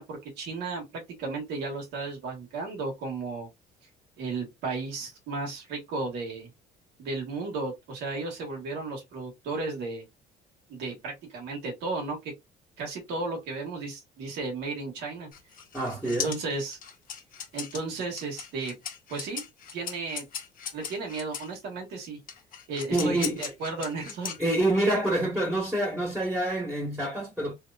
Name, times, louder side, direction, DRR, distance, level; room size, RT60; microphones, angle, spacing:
voice 1, 0.0-3.5 4.2-6.5 7.0-10.0 10.7-12.3 12.8-15.3 16.0-16.8 17.5-18.7 19.1-19.4 19.7-20.2 20.7-22.2 22.7-24.3, right 3 dB, 80° right, 1.6 m, -34 dB
sound 1, 15.3-21.5 22.3-24.9, left 8 dB, 55° left, 1.2 m, -38 dB
voice 2, 15.7-16.3 22.9-23.4 24.4-27.5, right 1 dB, 5° right, 1.7 m, -27 dB
3.1 x 2.8 x 2.5 m
cardioid pair, 110°, 17 cm